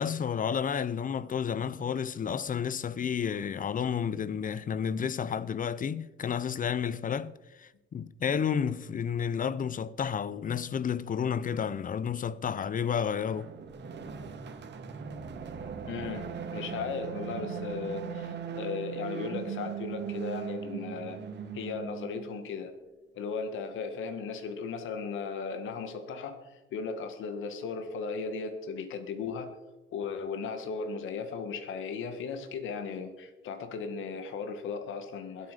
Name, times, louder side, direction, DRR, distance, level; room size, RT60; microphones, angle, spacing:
voice 1, 0.0-13.5, left 7 dB, 45° left, 0.8 m, -31 dB
sound 1, 13.3-22.5, right 7 dB, 60° right, 2.0 m, -39 dB
voice 2, 15.9-21.2 21.5-22.7 23.2-29.5 29.9-35.5, left 5 dB, 80° left, 1.7 m, -36 dB
21.5 x 8.4 x 5.1 m
cardioid pair, 90°, 20 cm